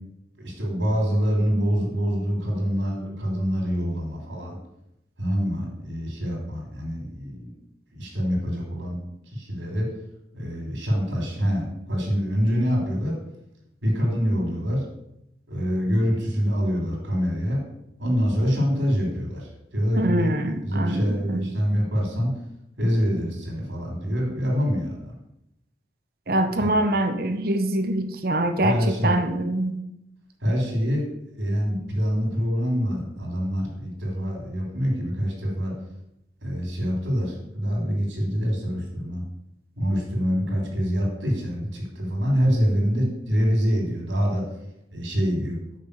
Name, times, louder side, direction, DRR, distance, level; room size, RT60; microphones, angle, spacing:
voice 1, 0.4-4.6 5.2-7.5 7.9-9.0 9.3-9.9 10.3-13.1 13.8-14.8 15.5-17.6 18.0-20.3 20.6-22.3 22.8-25.1 26.6-26.7 28.6-29.2 30.4-31.0 31.3-35.7 36.4-39.2 39.8-44.4 44.9-45.6, equal, 75° right, 0 dB, 3.2 m, -25 dB
voice 2, 20.0-21.5 26.3-29.8, right 1 dB, 50° right, 7 dB, 0.9 m, -24 dB
6.5 x 5.8 x 6.7 m, 0.83 s
head